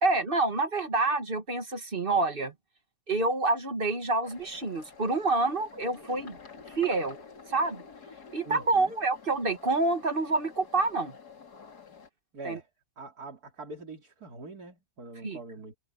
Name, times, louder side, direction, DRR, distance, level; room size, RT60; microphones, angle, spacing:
voice 1, 0.0-2.5 3.1-6.4 6.7-7.2 7.5-7.8 8.3-11.1 12.4-12.6 15.2-15.4, right 3 dB, 35° right, 2.3 m, -27 dB
sound 1, 4.2-12.1, left 5 dB, 75° left, 2.8 m, -49 dB
voice 2, 8.4-8.9 12.3-12.7 13.0-15.8, right 3 dB, 70° right, 3.4 m, -44 dB
omnidirectional pair, 1.7 m